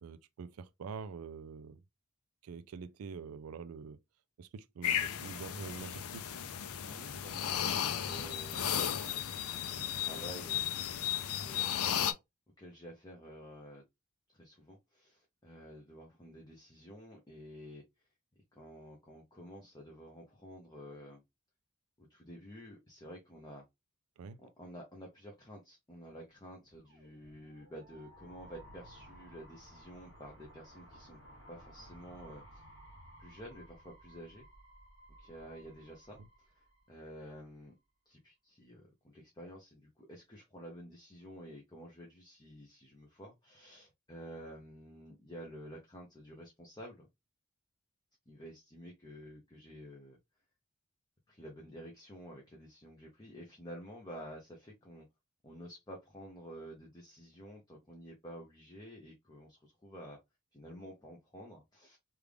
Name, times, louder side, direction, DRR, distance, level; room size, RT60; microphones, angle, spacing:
voice 1, 0.0-1.8 2.4-4.0 4.4-6.4 24.2-24.4, right 5 dB, 80° right, 0.4 m, -45 dB
sound 1, 4.8-12.1, left 9 dB, 85° left, 0.5 m, -35 dB
voice 2, 6.8-9.0 9.3-11.7 12.6-13.8 14.3-17.8 18.5-21.2 22.0-23.6 24.4-31.2 31.5-32.6 33.2-34.4 35.2-36.2 36.4-37.7 38.1-47.1 48.3-50.2 51.3-55.1 55.4-60.2 60.5-62.0, equal, 20° left, 0.6 m, -50 dB
sound 2, 26.4-37.4, right 1 dB, 60° left, 1.6 m, -57 dB
3.4 x 2.4 x 3.3 m
head